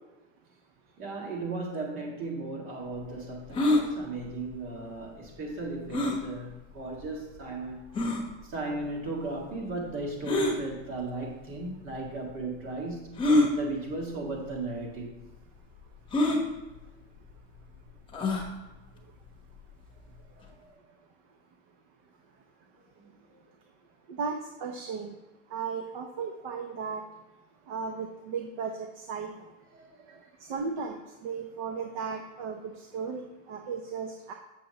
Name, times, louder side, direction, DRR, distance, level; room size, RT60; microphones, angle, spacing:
voice 1, 1.0-8.0 8.4-15.2 20.5-21.0 22.8-23.4 29.7-30.2, right 2 dB, 30° right, 0 dB, 1.9 m, -36 dB
sound 1, 3.5-3.8 5.9-6.2 7.0-7.1 8.0-8.2 10.2-10.6 11.6-11.7 13.2-13.5 14.4-14.6 14.8-14.9 16.1-16.4 18.1-18.5, left 2 dB, 10° left, 0.9 m, -24 dB
voice 2, 24.1-25.2 25.5-27.0 27.7-29.3 30.1-34.3, right 5 dB, 50° right, 4 dB, 0.8 m, -36 dB
7.8 x 6.9 x 2.9 m, 1.1 s
supercardioid pair, 160°, 40 cm